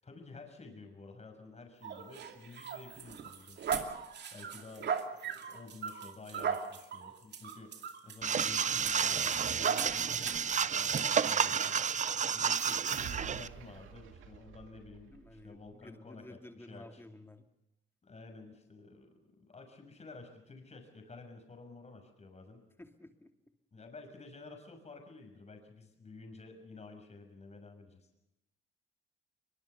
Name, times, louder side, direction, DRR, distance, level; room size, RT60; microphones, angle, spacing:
voice 1, 0.0-3.9 4.3-11.8 12.3-17.0 18.0-22.6 23.7-28.1, left 3 dB, 35° left, 4 dB, 6.4 m, -51 dB
sound 1, 1.8-10.5 10.9-11.1 11.6-11.8, right 6 dB, 60° right, 2.6 m, -38 dB
sound 2, 8.2-13.5, right 7 dB, 40° right, 0.7 m, -31 dB
sound 3, 12.5-15.7, right 9 dB, 80° right, 2.4 m, -48 dB
voice 2, 15.1-17.4 22.8-23.3, left 1 dB, 10° left, 6 dB, 2.6 m, -52 dB
22.5 x 22.5 x 6.9 m, 0.88 s
cardioid pair, 90°, 20 cm